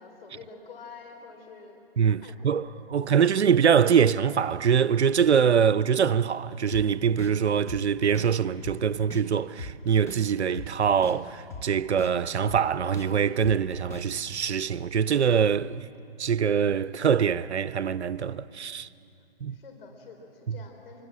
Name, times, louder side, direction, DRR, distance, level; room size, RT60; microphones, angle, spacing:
voice 1, 0.0-1.8 2.2-2.6 2.9-3.2 19.5-21.0, left 5 dB, 60° left, 4.0 m, -47 dB
voice 2, 2.0-15.9 16.2-18.9 19.4-19.6 20.5-20.6, right 7 dB, 90° right, 0.8 m, -24 dB
sound 1, 6.7-6.8 7.2-7.3 7.7-7.8 8.1-8.3 8.6-8.8 9.1-9.2 9.6-9.7 10.1-10.2 10.5-10.7 11.0-11.2 11.5-11.6 12.0-12.1 12.5-12.6 12.9-13.1 13.4-13.6 13.9-14.0, left 2 dB, 10° left, 1.5 m, -39 dB
25.0 x 24.0 x 7.4 m
hypercardioid pair, 150°, 32 cm